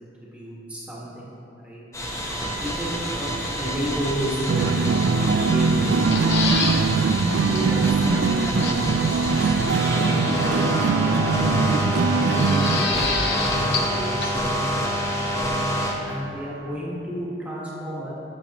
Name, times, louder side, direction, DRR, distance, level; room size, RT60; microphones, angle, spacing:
voice 1, 0.0-1.4 1.6-2.2 2.6-6.3 6.6-11.5 12.0-15.5 16.0-18.1, right 1 dB, 10° right, -7 dB, 1.5 m, -33 dB
sound 1, 1.9-15.9, equal, 15° left, 0.9 m, -27 dB
sound 2, 4.5-12.8, right 4 dB, 90° right, 0.3 m, -22 dB
sound 3, 5.9-6.8 7.2-7.3 7.6-7.7 8.6-9.0 10.3-10.9 12.3-14.0 14.2-14.3, left 4 dB, 70° left, 0.9 m, -27 dB
14.0 x 7.1 x 3.0 m, 2.9 s
head